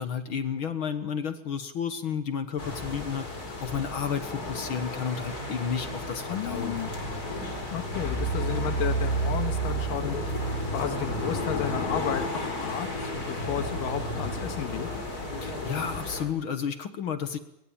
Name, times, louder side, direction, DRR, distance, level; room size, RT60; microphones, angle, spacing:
voice 1, 0.0-6.8 15.4-17.4, left 7 dB, 55° left, 9 dB, 1.6 m, -32 dB
sound 1, 2.6-16.3, equal, 25° left, 4.8 m, -32 dB
voice 2, 6.3-6.9 7.7-10.2 10.7-12.3 12.6-12.9 13.1-14.9, left 8 dB, 85° left, 7 dB, 3.3 m, -32 dB
23.0 x 22.0 x 8.8 m, 0.83 s
omnidirectional pair, 3.8 m